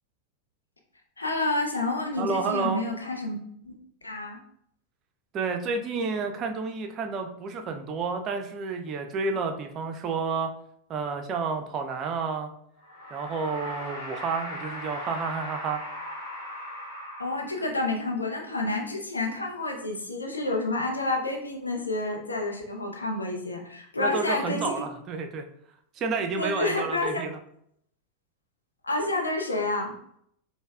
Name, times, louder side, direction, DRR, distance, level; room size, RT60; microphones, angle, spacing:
voice 1, 1.2-3.4 3.6-3.7 4.0-4.4 17.2-24.8 26.3-27.2 28.8-29.9, left 2 dB, 80° left, 2 dB, 0.6 m, -29 dB
voice 2, 2.2-2.8 5.3-10.5 10.9-12.5 13.1-15.8 24.0-25.5 25.9-27.3, right 4 dB, 30° right, 5 dB, 0.4 m, -30 dB
sound 1, 12.8-17.9, left 1 dB, 45° left, 1.2 m, -39 dB
5.1 x 2.1 x 2.3 m, 0.70 s
figure-of-eight pair, 90°, 0 cm